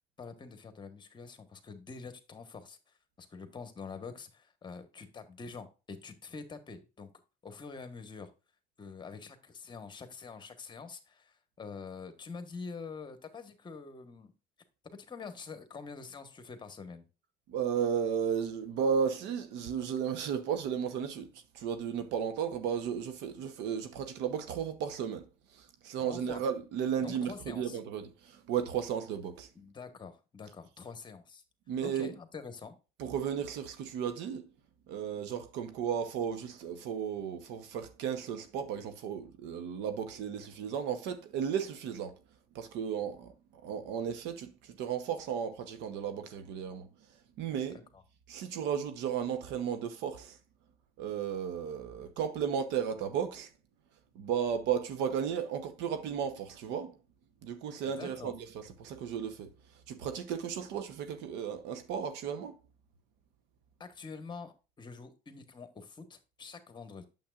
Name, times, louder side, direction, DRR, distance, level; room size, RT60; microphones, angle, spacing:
voice 1, 0.2-2.8 3.2-7.1 7.4-8.3 8.8-14.3 14.8-17.0 26.0-26.4 27.0-27.8 29.5-31.4 31.8-32.7 47.9-48.0 57.8-58.3 63.8-67.1, left 5 dB, 25° left, 1.2 m, -46 dB
voice 2, 17.5-25.3 25.5-29.5 31.7-32.1 33.0-34.5 34.9-42.2 42.5-43.3 43.6-46.9 47.4-47.8 48.3-50.4 51.0-53.5 54.1-57.0 57.4-59.5 59.9-62.5, right 8 dB, 75° right, 1.0 m, -34 dB
8.7 x 7.1 x 2.5 m
cardioid pair, 115°, 18 cm